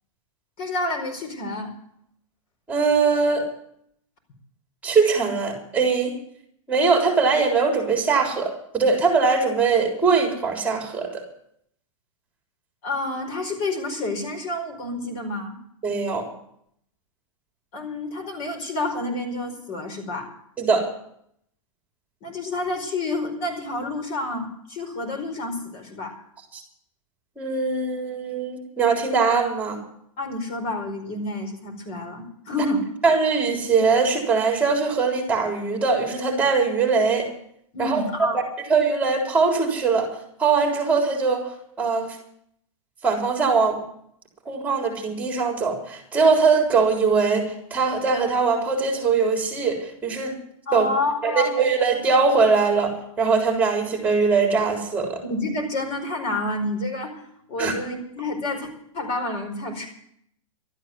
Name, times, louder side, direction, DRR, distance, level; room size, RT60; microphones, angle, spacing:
voice 1, 0.6-1.7 12.8-15.6 17.7-20.3 22.2-26.2 30.2-32.9 37.7-38.4 50.7-51.6 55.3-57.2 57.5-59.9, left 2 dB, 40° left, 3 dB, 4.8 m, -29 dB
voice 2, 2.7-3.5 4.8-6.1 6.7-11.2 15.8-16.2 20.6-20.9 27.4-29.8 33.0-37.3 37.8-38.3 38.7-40.1 40.4-41.5 41.8-42.2 43.0-43.8 44.5-50.4 50.7-50.9 51.2-55.2 57.6-57.7, right 4 dB, 10° right, 2 dB, 3.8 m, -21 dB
13.0 x 9.5 x 9.6 m, 0.71 s
hypercardioid pair, 140°, 18 cm